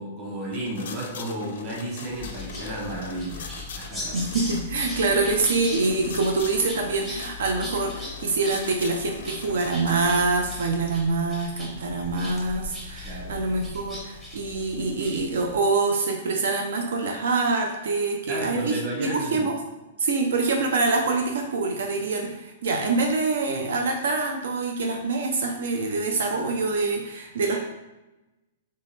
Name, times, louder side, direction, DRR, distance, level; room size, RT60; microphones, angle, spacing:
voice 1, 0.0-4.2 13.0-13.4 18.3-19.4, right 1 dB, 20° right, -4 dB, 1.1 m, -33 dB
sound 1, 0.5-10.3, left 5 dB, 60° left, 0.5 m, -42 dB
sound 2, 2.1-15.6, left 2 dB, 5° right, 0.7 m, -39 dB
voice 2, 4.1-19.6 20.0-27.6, right 3 dB, 70° right, 2 dB, 0.7 m, -25 dB
3.9 x 3.0 x 4.1 m, 1.0 s
hypercardioid pair, 175°, 0 cm